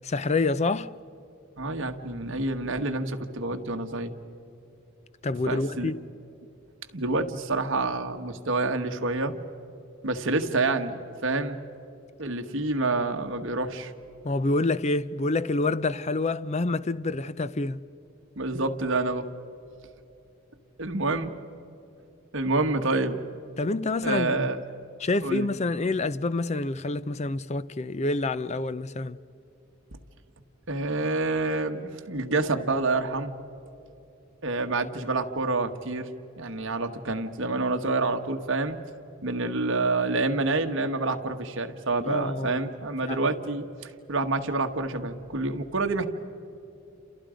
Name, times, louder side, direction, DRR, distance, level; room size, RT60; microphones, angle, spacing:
voice 1, 0.0-0.9 5.2-5.9 14.2-17.8 23.6-24.5 25.0-29.2 42.1-42.6 43.0-43.2, left 2 dB, 30° left, 0.5 m, -27 dB
voice 2, 1.6-4.1 5.4-5.9 6.9-9.3 10.0-11.6 12.2-13.9 18.4-19.3 20.8-21.3 22.3-23.2 24.0-24.6 25.2-25.5 30.7-33.3 34.4-36.1 36.4-38.8 39.2-46.1, right 3 dB, 60° right, 1.5 m, -28 dB
29.5 x 28.0 x 5.1 m
head